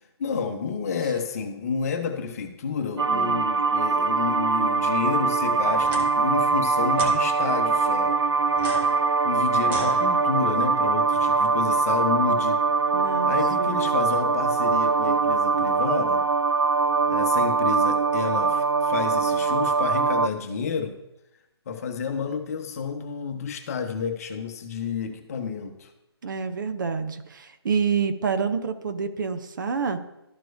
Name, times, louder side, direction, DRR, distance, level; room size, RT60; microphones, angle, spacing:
voice 1, 0.2-8.1 9.2-12.6 13.3-16.2 17.1-20.9 21.7-25.9, left 6 dB, 35° left, 5 dB, 1.0 m, -30 dB
sound 1, 3.0-20.3, right 4 dB, 80° right, 0.4 m, -22 dB
voice 2, 3.1-3.5 12.9-13.9 26.2-30.0, right 5 dB, 50° right, 9 dB, 0.7 m, -28 dB
sound 2, 5.8-6.0 6.9-7.2 8.5-10.5, right 2 dB, 10° right, 0.8 m, -36 dB
13.0 x 4.7 x 2.6 m, 0.90 s
figure-of-eight pair, 145°, 14 cm